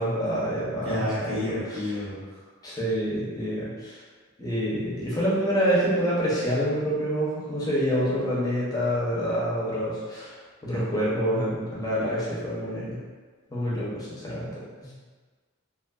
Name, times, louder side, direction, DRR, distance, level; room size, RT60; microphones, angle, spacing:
voice 1, 0.0-1.9 2.6-4.0 4.4-10.4 10.6-13.0 13.5-14.6, equal, 20° left, -8 dB, 0.7 m, -27 dB
voice 2, 0.7-2.4 14.8-14.9, left 1 dB, 85° right, -10 dB, 1.2 m, -31 dB
2.5 x 2.5 x 2.4 m, 1.4 s
head